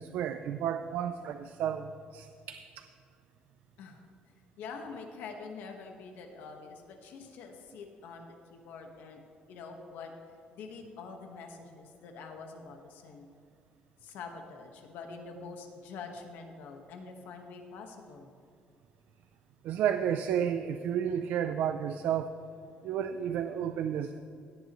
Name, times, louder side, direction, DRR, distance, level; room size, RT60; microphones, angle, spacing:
voice 1, 0.0-2.9 19.6-22.3 22.8-24.2, right 9 dB, 70° right, 8 dB, 0.4 m, -32 dB
voice 2, 4.6-9.2 9.5-10.1 10.5-13.3 14.0-18.3, left 4 dB, 85° left, 3 dB, 1.5 m, -45 dB
17.0 x 10.5 x 3.1 m, 2.3 s
cardioid pair, 180°, 3 cm